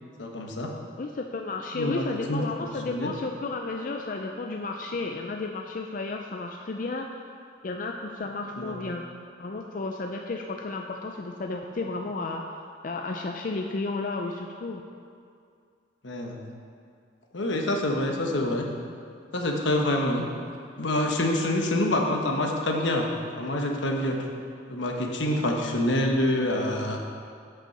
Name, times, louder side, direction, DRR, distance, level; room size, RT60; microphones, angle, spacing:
voice 1, 0.2-0.7 1.7-2.4 2.9-3.1 8.6-8.8 16.0-16.4 17.3-18.7 19.3-20.2 20.8-24.2 24.7-27.0, left 1 dB, 75° left, 1 dB, 1.1 m, -26 dB
voice 2, 1.0-7.1 7.6-9.1 9.4-12.4 12.8-14.8, left 3 dB, 45° left, 3 dB, 0.4 m, -32 dB
8.2 x 6.2 x 6.6 m, 2.3 s
head